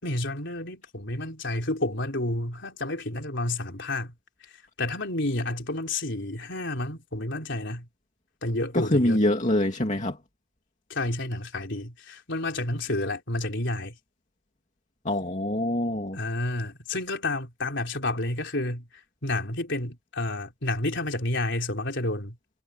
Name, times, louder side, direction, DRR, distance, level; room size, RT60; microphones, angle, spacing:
voice 1, 0.0-4.1 4.8-7.9 8.4-9.2 10.9-13.9 16.1-18.9 19.2-22.4, left 2 dB, 55° left, 4.3 m, -30 dB
voice 2, 8.7-10.2 15.0-16.2, left 1 dB, 35° left, 2.5 m, -24 dB
head